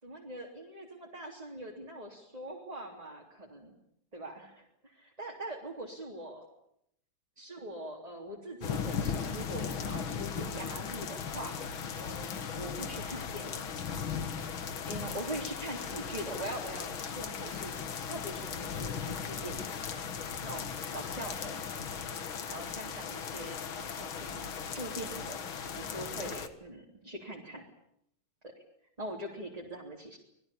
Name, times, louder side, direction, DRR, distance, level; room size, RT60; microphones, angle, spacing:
voice 1, 0.0-3.7 4.1-6.4 7.4-13.6 14.9-19.7 20.4-21.6 22.5-25.4 25.8-27.6 28.4-28.6 29.0-30.2, right 1 dB, 15° right, -1 dB, 3.4 m, -43 dB
sound 1, 8.6-26.5, left 7 dB, 65° left, 2.4 m, -37 dB
27.0 x 20.5 x 8.7 m, 0.76 s
omnidirectional pair, 2.4 m